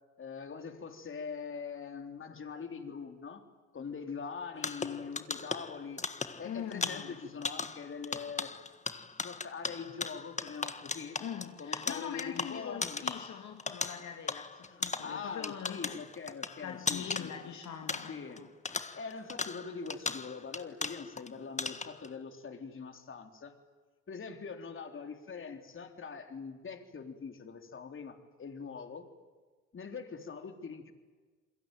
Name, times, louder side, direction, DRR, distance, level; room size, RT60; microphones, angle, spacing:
voice 1, 0.2-3.4 3.7-6.0 6.4-8.5 9.2-11.2 11.6-13.0 14.7-17.3 18.1-18.4 19.0-23.6 24.1-29.1 29.7-30.9, left 5 dB, 40° left, 6 dB, 3.8 m, -43 dB
sound 1, 4.6-18.4 18.7-21.3 21.6-22.1, left 4 dB, 25° left, 1.6 m, -38 dB
voice 2, 6.4-7.2 11.2-16.0 16.6-18.5, left 8 dB, 70° left, 4 dB, 2.6 m, -42 dB
28.5 x 22.0 x 9.2 m, 1.4 s
cardioid pair, 90°, 30 cm